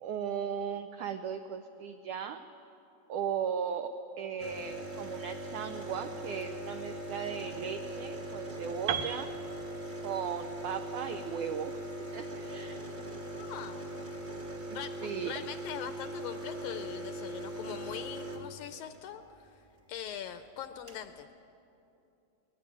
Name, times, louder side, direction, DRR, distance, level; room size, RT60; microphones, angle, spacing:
voice 1, 0.0-2.4 3.1-3.9 4.2-9.3 10.0-11.8 12.1-12.8 14.7-15.3, right 7 dB, 90° right, 7 dB, 1.7 m, -37 dB
sound 1, 4.4-19.0 20.3-20.4 20.6-21.0, right 1 dB, 35° right, 0.7 m, -40 dB
Piano, 8.9-12.8, right 9 dB, 70° right, 2.0 m, -39 dB
voice 2, 13.4-13.8 14.7-19.2 19.5-19.6 19.9-21.3, left 10 dB, 80° left, 9 dB, 2.2 m, -41 dB
21.5 x 19.5 x 9.5 m, 2.8 s
omnidirectional pair, 4.6 m